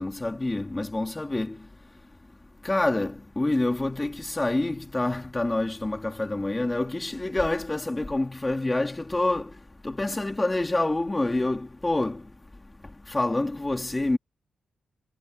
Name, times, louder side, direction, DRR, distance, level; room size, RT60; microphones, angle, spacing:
voice 1, 0.0-1.7 2.6-9.5 9.8-12.3 13.1-14.2, left 2 dB, 15° left, 3.0 m, -27 dB
wide cardioid pair, 130°, 0 cm